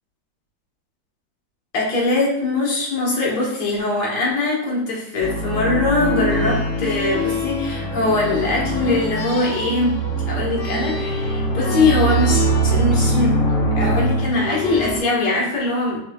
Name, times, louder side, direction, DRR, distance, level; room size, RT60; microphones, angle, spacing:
voice 1, 1.7-10.0 10.3-13.4 13.8-16.0, left 2 dB, 60° left, -4 dB, 2.0 m, -21 dB
sound 1, 5.2-15.0, right 1 dB, 75° left, 1.6 m, -22 dB
5.9 x 3.8 x 2.3 m, 0.82 s
omnidirectional pair, 2.0 m